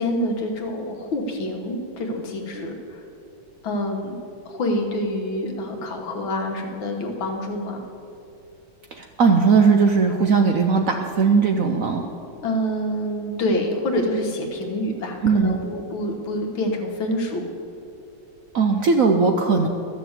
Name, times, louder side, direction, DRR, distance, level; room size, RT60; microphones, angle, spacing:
voice 1, 0.0-3.0 3.6-4.2 4.5-7.8 12.4-17.4, left 1 dB, 85° left, 2 dB, 2.1 m, -27 dB
voice 2, 8.9-12.1 15.2-15.6 18.5-19.7, right 5 dB, 65° right, 4 dB, 0.8 m, -18 dB
12.5 x 6.7 x 8.0 m, 2.7 s
omnidirectional pair, 2.1 m